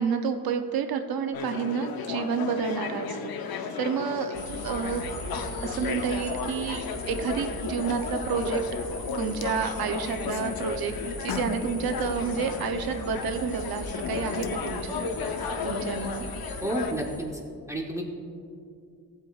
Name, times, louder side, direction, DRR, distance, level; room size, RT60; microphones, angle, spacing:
voice 1, 0.0-4.3 4.6-5.0 5.6-8.6 9.1-16.2, right 6 dB, 85° right, 7 dB, 0.7 m, -30 dB
sound 1, 1.3-16.9, left 6 dB, 85° left, 0.7 m, -34 dB
sound 2, 4.3-17.2, equal, 25° left, 2.1 m, -40 dB
voice 2, 16.6-17.4 17.7-18.0, right 1 dB, 10° right, 1 dB, 0.7 m, -30 dB
16.0 x 7.9 x 2.3 m, 2.4 s
wide cardioid pair, 150°, 35 cm